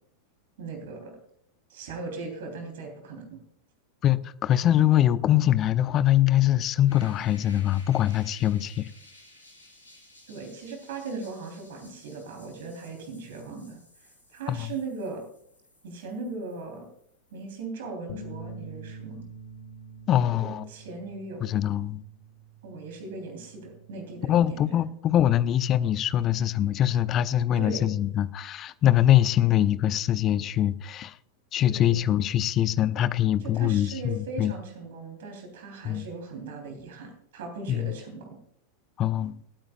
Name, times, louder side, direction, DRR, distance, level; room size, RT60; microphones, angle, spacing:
voice 1, 0.6-1.2 1.7-3.4 10.3-15.3 15.8-16.9 17.3-19.2 20.3-21.5 22.6-24.9 27.6-27.9 31.6-32.0 33.4-38.4, right 3 dB, 55° right, 3.4 m, -38 dB
voice 2, 4.0-8.9 14.5-14.7 20.1-20.6 21.4-22.0 24.3-31.1 31.5-34.5 35.8-36.0 37.7-37.8 39.0-39.3, left 12 dB, 30° left, 0.7 m, -23 dB
sound 1, 6.9-17.6, left 1 dB, 85° left, 4.8 m, -55 dB
sound 2, 18.1-24.4, right 2 dB, 55° left, 1.2 m, -46 dB
27.0 x 8.9 x 2.3 m
figure-of-eight pair, 90°, 0 cm